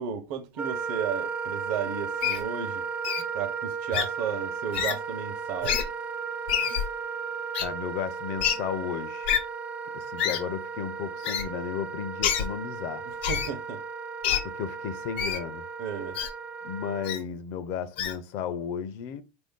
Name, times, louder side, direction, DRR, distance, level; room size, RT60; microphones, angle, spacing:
voice 1, 0.0-2.9 3.3-5.8 13.0-13.8 15.8-16.2, right 7 dB, 55° right, 0.7 m, -34 dB
Wind instrument woodwind instrument, 0.6-17.2, right 5 dB, 20° right, 0.4 m, -35 dB
Wild animals, 2.2-2.4 3.0-3.2 3.9-4.1 4.7-5.0 5.6-5.8 6.5-6.8 7.5-7.6 8.4-8.5 9.3-9.4 10.2-10.4 11.2-11.4 12.2-12.5 13.2-13.5 14.2-14.4 15.2-15.4 16.1-16.3 17.0-17.2 18.0-18.1, left 9 dB, 85° left, 0.8 m, -26 dB
voice 2, 7.6-9.3 9.9-13.1 14.4-15.6 16.6-19.2, left 8 dB, 55° left, 0.5 m, -34 dB
3.9 x 2.6 x 3.6 m
supercardioid pair, 140°, 6 cm